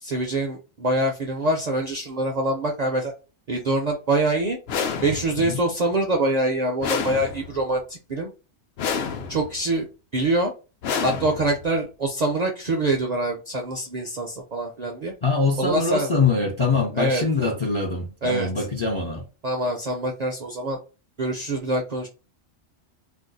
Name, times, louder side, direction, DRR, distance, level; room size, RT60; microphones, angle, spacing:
voice 1, 0.0-3.1 3.5-4.6 5.0-8.3 9.3-9.9 10.1-10.5 11.0-15.1 15.6-16.1 17.0-17.5 18.2-18.6 19.4-20.8 21.2-22.1, right 2 dB, 55° right, 0.4 m, -25 dB
sound 1, 4.7-5.5 6.8-7.7 8.8-9.6 10.8-11.7, left 6 dB, 65° left, 0.7 m, -29 dB
voice 2, 15.2-19.3, left 4 dB, 40° left, 0.4 m, -23 dB
2.5 x 2.2 x 3.8 m
omnidirectional pair, 1.2 m